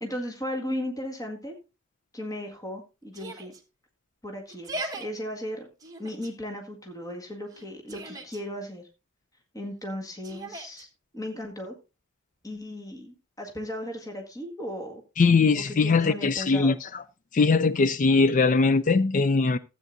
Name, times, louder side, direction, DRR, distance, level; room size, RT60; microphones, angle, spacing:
voice 1, 0.0-1.5 2.1-3.5 4.2-5.7 6.0-8.8 9.5-10.9 11.1-11.7 12.4-15.0 15.7-16.7, left 1 dB, 20° left, 1.8 m, -36 dB
Yell, 3.1-3.6 4.5-5.1 5.8-6.3 7.5-8.4 10.2-10.8, right 2 dB, 20° right, 1.4 m, -38 dB
voice 2, 15.2-17.0 17.3-19.6, left 4 dB, 40° left, 0.4 m, -21 dB
14.5 x 8.5 x 2.6 m
head